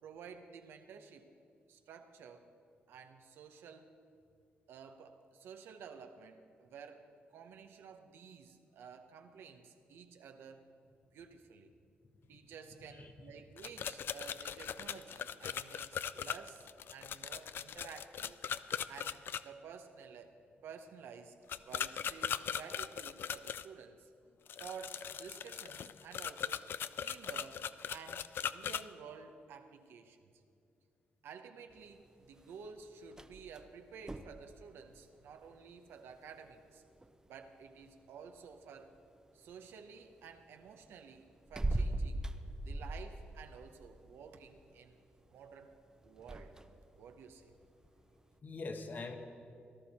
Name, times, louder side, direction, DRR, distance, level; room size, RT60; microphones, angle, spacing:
voice 1, 0.0-1.3 1.7-2.5 2.9-3.9 4.7-10.7 11.1-11.7 12.3-18.4 18.9-20.3 20.6-24.1 24.6-26.7 27.0-30.3 31.2-36.8 37.3-39.0 39.3-42.2 42.6-45.0 45.3-46.6 47.0-47.6, right 6 dB, 85° right, 6 dB, 0.9 m, -52 dB
voice 2, 12.9-13.4 18.7-18.8 48.4-49.2, left 3 dB, 50° left, 6 dB, 1.3 m, -44 dB
sound 1, 13.6-19.4 21.5-23.7 24.5-28.8, left 8 dB, 65° left, 0.4 m, -39 dB
sound 2, 31.7-48.4, right 1 dB, 15° right, 0.7 m, -44 dB
18.5 x 12.0 x 4.3 m, 2.5 s
cardioid pair, 70°, 4 cm